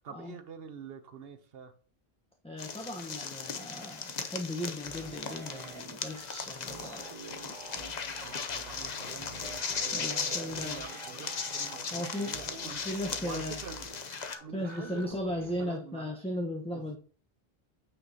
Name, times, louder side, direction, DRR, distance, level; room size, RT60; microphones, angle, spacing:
voice 1, 0.0-1.7 8.2-9.3 9.8-12.9 13.2-13.9 14.4-15.0 15.3-16.1 16.6-17.0, right 6 dB, 70° right, 9 dB, 1.0 m, -46 dB
voice 2, 2.4-7.1 9.9-10.8 11.9-12.4 12.7-13.6 14.5-17.0, left 1 dB, 5° left, 0 dB, 0.9 m, -37 dB
sound 1, 2.6-14.4, left 5 dB, 45° left, 0.8 m, -38 dB
sound 2, 4.8-15.6, right 3 dB, 30° right, 0.9 m, -48 dB
8.7 x 5.0 x 2.8 m, 0.40 s
omnidirectional pair, 1.0 m